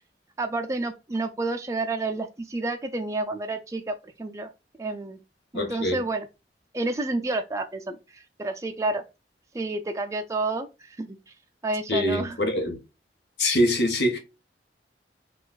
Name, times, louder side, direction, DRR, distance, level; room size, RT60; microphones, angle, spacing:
voice 1, 0.4-4.5 4.8-5.2 5.5-6.3 6.7-9.0 9.5-11.2 11.6-12.4, right 2 dB, 20° right, 0.4 m, -30 dB
voice 2, 5.5-6.0 11.9-12.8 13.4-14.2, left 1 dB, 80° left, 1.3 m, -24 dB
4.0 x 2.4 x 3.9 m
head